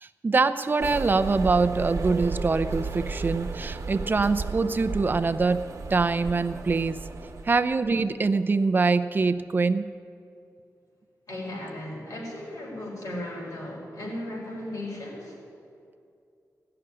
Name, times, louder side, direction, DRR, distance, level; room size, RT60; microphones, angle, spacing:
voice 1, 0.0-5.6 5.9-7.0 7.4-9.9, right 4 dB, 30° right, 10 dB, 0.5 m, -24 dB
sound 1, 0.8-7.8, right 4 dB, 55° right, 1.3 m, -34 dB
voice 2, 11.3-15.4, left 1 dB, 70° left, -3 dB, 4.6 m, -36 dB
16.5 x 6.8 x 9.8 m, 2.5 s
wide cardioid pair, 170°, 6 cm